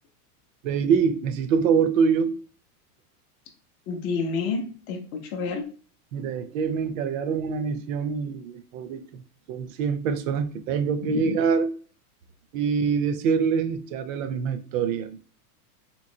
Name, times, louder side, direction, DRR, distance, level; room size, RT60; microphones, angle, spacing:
voice 1, 0.6-2.3 6.1-9.2 9.5-11.7 12.5-15.1, right 6 dB, 60° right, 8 dB, 0.6 m, -25 dB
voice 2, 3.9-5.7 11.0-11.4, left 4 dB, 25° left, 3 dB, 0.5 m, -29 dB
4.1 x 3.0 x 2.6 m, 0.39 s
supercardioid pair, 160°, 46 cm